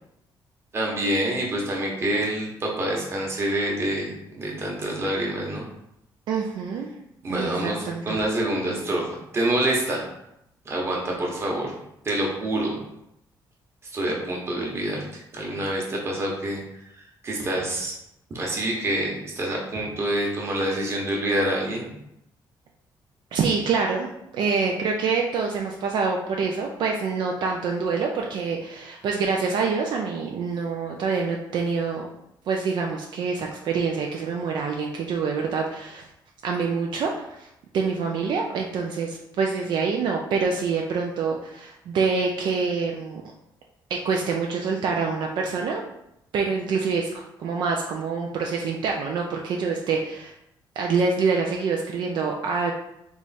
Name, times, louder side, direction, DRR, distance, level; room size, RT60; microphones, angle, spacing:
voice 1, 0.7-5.6 7.2-10.0 10.6-11.7 12.0-12.7 13.9-16.6 17.2-17.9 18.3-21.9, right 1 dB, 30° right, -2 dB, 1.1 m, -26 dB
voice 2, 6.3-6.9 7.3-8.2 23.3-32.1 32.5-36.1 36.4-37.5 37.7-43.2 43.9-45.8 46.3-50.3 50.8-52.7, right 5 dB, 65° right, 0 dB, 0.5 m, -26 dB
3.5 x 3.1 x 4.2 m, 0.82 s
cardioid pair, 145°, 8 cm